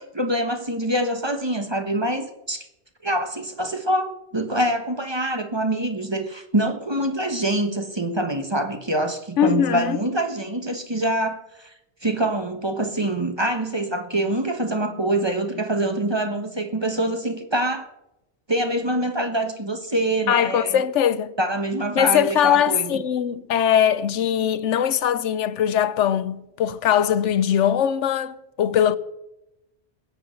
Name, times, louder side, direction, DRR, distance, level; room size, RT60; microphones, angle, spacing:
voice 1, 0.0-2.6 3.0-11.7 12.0-17.9 18.5-20.8 21.4-23.0, right 1 dB, 25° right, 1.3 m, -25 dB
voice 2, 9.4-10.0 20.3-21.3 21.9-29.0, left 9 dB, 85° left, 1.0 m, -21 dB
20.5 x 7.8 x 6.5 m
omnidirectional pair, 1.2 m